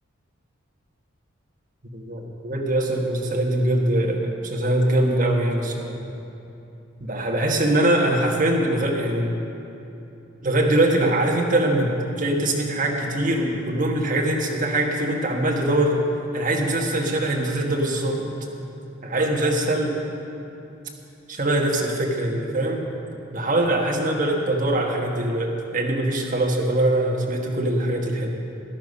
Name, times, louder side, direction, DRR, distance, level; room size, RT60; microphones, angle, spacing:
voice 1, 1.9-5.9 7.0-9.4 10.4-16.0 16.3-18.3 19.0-20.0 21.3-22.8 23.3-28.3, right 1 dB, 40° right, 0 dB, 1.4 m, -22 dB
13.5 x 11.5 x 5.5 m, 2.8 s
head